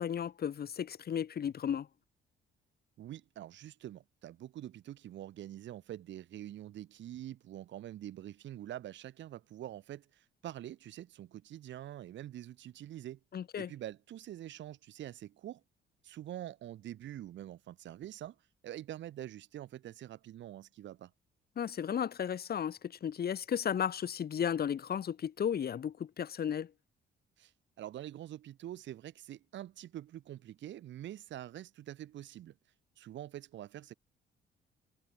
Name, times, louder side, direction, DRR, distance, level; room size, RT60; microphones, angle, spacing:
voice 1, 0.0-1.9 13.3-13.7 21.6-26.7, left 8 dB, 50° left, 1.5 m, -34 dB
voice 2, 3.0-13.2 13.6-15.6 16.0-18.4 18.6-21.1 27.4-27.5 27.8-32.5 33.0-33.9, right 12 dB, 70° right, 0.9 m, -45 dB
cardioid pair, 90°, 20 cm